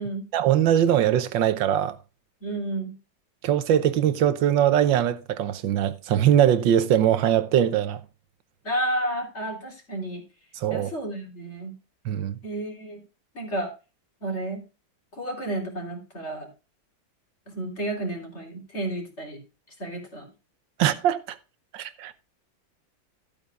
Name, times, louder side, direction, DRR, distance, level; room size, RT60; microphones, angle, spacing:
voice 1, 0.3-2.0 3.4-8.0 10.6-10.9 12.0-12.4 20.8-21.4 21.7-22.1, right 10 dB, 80° right, 1.6 m, -21 dB
voice 2, 2.4-2.9 8.6-10.2 10.7-11.7 12.4-13.0 13.3-13.7 14.2-14.6 15.1-16.5 17.5-19.4 19.8-20.3, right 1 dB, 35° left, 3.8 m, -31 dB
14.0 x 8.8 x 2.4 m
omnidirectional pair, 2.1 m